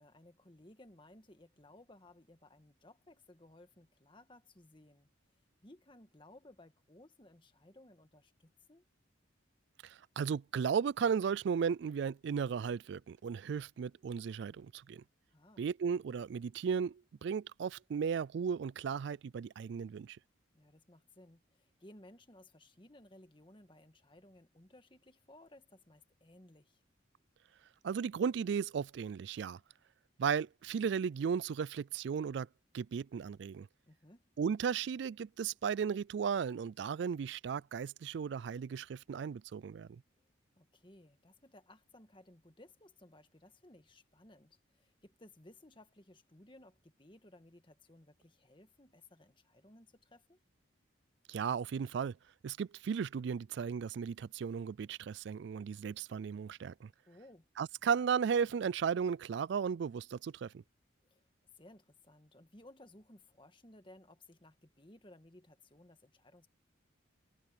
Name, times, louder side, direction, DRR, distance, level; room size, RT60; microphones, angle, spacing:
voice 1, 0.0-5.1 5.6-8.8 15.3-15.7 20.5-26.8 33.9-34.2 40.6-50.4 57.1-57.5 61.0-61.2 61.6-66.5, left 1 dB, 25° left, 1.6 m, -59 dB
voice 2, 9.8-15.0 15.6-20.2 27.8-29.6 30.2-32.5 32.7-33.7 34.4-40.0 51.3-52.2 52.4-56.9 57.6-60.6, right 6 dB, 60° right, 0.3 m, -35 dB
head